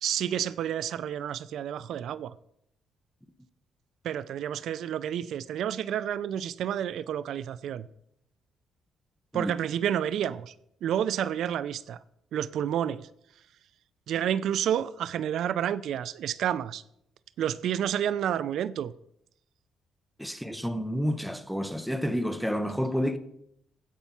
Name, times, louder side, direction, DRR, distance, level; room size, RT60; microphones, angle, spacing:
voice 1, 0.0-2.3 4.0-7.9 9.3-10.5 10.8-12.0 12.3-13.1 14.1-16.8 17.4-18.9, right 10 dB, 75° right, 0.4 m, -30 dB
voice 2, 20.2-23.2, equal, ahead, 0.9 m, -29 dB
15.5 x 5.4 x 5.9 m
cardioid pair, 90°, 0 cm